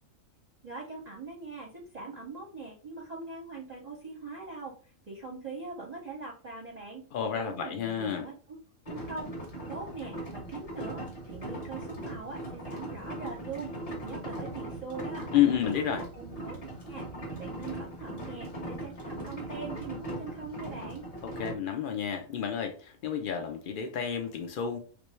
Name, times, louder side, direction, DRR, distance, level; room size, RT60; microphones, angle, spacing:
voice 1, 0.6-4.7 5.1-7.0 7.4-8.3 8.9-9.3 9.7-11.0 11.3-13.7 14.0-15.3 15.8-16.6 16.8-17.1 17.3-21.1, right 4 dB, 35° right, 0.7 m, -42 dB
voice 2, 7.1-8.3 15.3-16.1 21.2-24.8, left 9 dB, 70° left, 0.5 m, -30 dB
sound 1, 8.9-21.5, right 1 dB, 30° left, 0.8 m, -39 dB
3.3 x 2.5 x 3.1 m
omnidirectional pair, 1.5 m